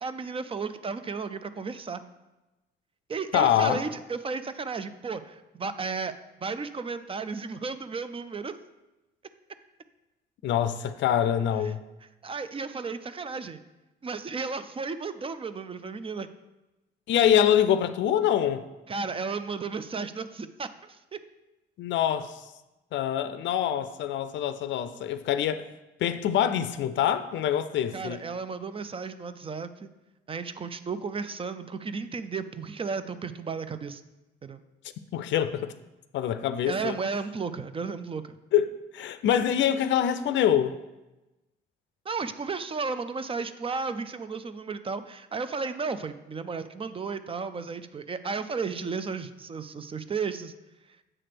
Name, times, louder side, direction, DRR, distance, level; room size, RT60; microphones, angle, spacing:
voice 1, 0.0-2.0 3.1-6.1 6.4-8.6 12.2-13.6 14.0-16.3 18.9-21.2 27.9-29.9 30.3-34.0 34.4-34.6 36.7-38.2 42.1-50.6, right 4 dB, 30° right, 12 dB, 0.4 m, -34 dB
voice 2, 3.3-3.8 10.4-11.8 17.1-18.6 21.8-22.5 22.9-25.7 26.0-28.2 35.1-35.7 36.1-37.0 38.5-38.7 38.9-40.8, left 10 dB, 70° left, 11 dB, 0.5 m, -25 dB
7.6 x 3.3 x 5.9 m, 1.0 s
cardioid pair, 90°, 20 cm